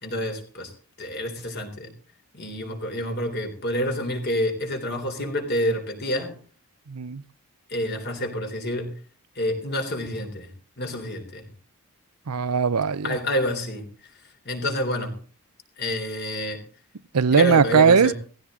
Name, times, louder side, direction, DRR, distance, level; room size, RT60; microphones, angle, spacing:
voice 1, 0.0-0.7 1.0-1.9 2.3-6.4 7.7-8.9 9.4-10.5 10.8-11.4 13.0-13.8 14.5-15.2 15.8-16.6 17.3-18.1, equal, 50° left, 3.6 m, -28 dB
voice 2, 6.9-7.2 12.3-13.2 17.1-18.1, right 6 dB, 90° right, 0.7 m, -19 dB
17.0 x 15.5 x 3.8 m
head